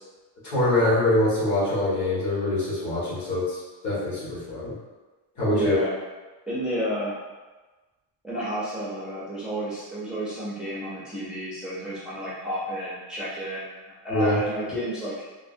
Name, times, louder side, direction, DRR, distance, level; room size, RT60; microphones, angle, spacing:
voice 1, 0.4-3.6 3.8-4.7 5.4-5.8 14.1-14.4, left 1 dB, 40° left, -9 dB, 1.4 m, -24 dB
voice 2, 5.5-5.9 6.5-7.2 8.2-15.1, equal, ahead, -9 dB, 0.3 m, -31 dB
3.5 x 2.0 x 2.5 m, 1.2 s
cardioid pair, 170°, 44 cm